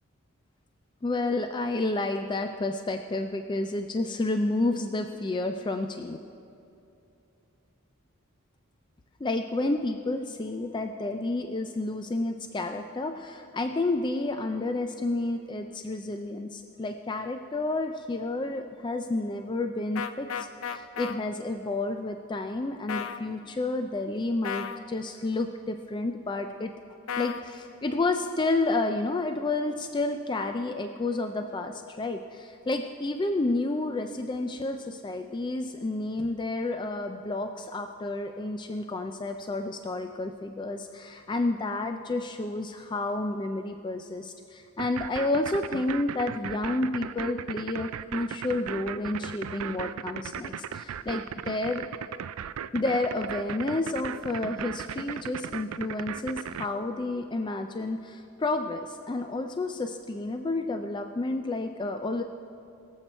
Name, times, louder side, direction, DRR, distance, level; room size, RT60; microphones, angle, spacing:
voice 1, 1.0-6.2 9.2-26.7 27.2-51.8 52.7-62.2, left 2 dB, 20° left, 6 dB, 0.4 m, -30 dB
sound 1, 20.0-21.1 22.9-23.2 24.4-24.8 27.1-27.4, left 8 dB, 65° left, 0.6 m, -33 dB
sound 2, 44.8-56.7, right 8 dB, 75° right, 0.4 m, -36 dB
22.0 x 7.5 x 4.5 m, 2.7 s
head